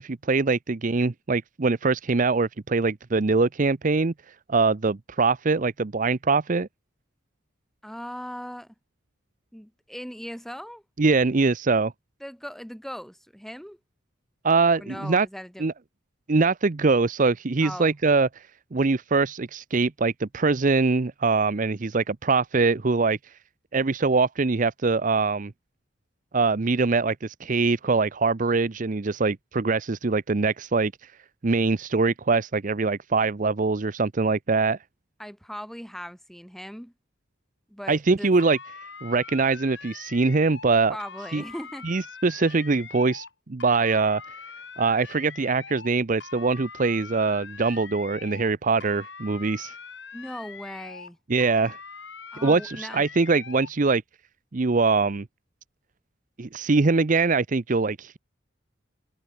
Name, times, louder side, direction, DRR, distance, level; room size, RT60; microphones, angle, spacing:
voice 1, 0.0-4.1 4.5-6.7 11.0-11.9 14.4-15.3 15.6-15.7 16.3-18.4 18.7-23.2 23.7-25.5 26.3-30.9 31.4-34.8 37.9-38.6 39.0-41.0 41.3-41.4 41.8-44.2 44.8-49.7 51.3-51.8 52.4-54.0 54.5-55.3 56.4-58.2, right 4 dB, 40° right, 0.6 m, -23 dB
voice 2, 7.8-8.7 9.5-10.8 12.2-13.8 14.8-15.7 17.6-17.9 35.2-36.9 37.7-38.3 40.9-41.9 50.1-51.2 52.3-53.0, equal, ahead, 5.0 m, -39 dB
sound 1, 38.4-40.7 41.0-43.3 43.6-45.9 46.2-48.5 48.8-51.1 51.4-53.7, left 5 dB, 65° left, 4.8 m, -43 dB
head